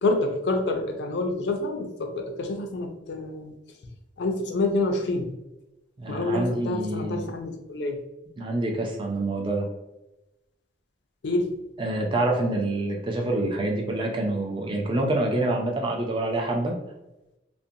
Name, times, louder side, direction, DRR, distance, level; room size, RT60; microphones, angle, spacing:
voice 1, 0.0-3.5 4.2-5.3 6.1-8.0 11.2-11.6, left 2 dB, 65° left, 4 dB, 0.4 m, -27 dB
voice 2, 6.0-7.3 8.4-9.7 11.8-16.8, right 2 dB, 25° right, 1 dB, 0.4 m, -26 dB
2.5 x 2.1 x 2.7 m, 0.94 s
head